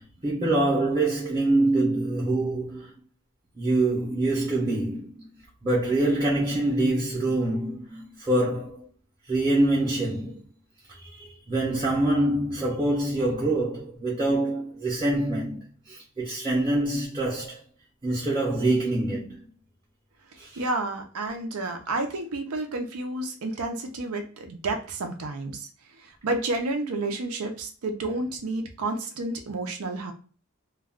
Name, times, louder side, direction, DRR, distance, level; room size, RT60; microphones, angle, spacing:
voice 1, 0.0-2.9 3.6-5.3 5.6-8.9 9.3-10.4 10.9-17.6 18.0-19.5 20.4-20.6, right 2 dB, 20° right, 0.7 m, -25 dB
voice 2, 20.6-25.7 26.0-30.1, right 2 dB, 85° right, 0.6 m, -30 dB
2.3 x 2.2 x 3.5 m
head